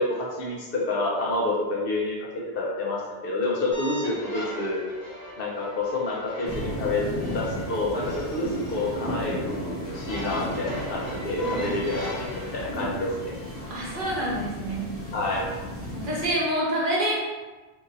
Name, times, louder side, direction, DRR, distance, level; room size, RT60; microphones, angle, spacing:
voice 1, 0.0-2.3 2.5-4.8 5.4-7.1 7.3-13.3 15.1-15.5, left 2 dB, 65° left, -3 dB, 0.9 m, -28 dB
sound 1, 3.7-14.0, left 1 dB, 40° left, 1.0 m, -39 dB
sound 2, 6.4-16.3, equal, 15° left, 0.6 m, -34 dB
voice 2, 13.7-14.9 15.9-17.1, right 1 dB, 55° right, -4 dB, 1.0 m, -27 dB
2.9 x 2.6 x 3.9 m, 1.3 s
omnidirectional pair, 1.0 m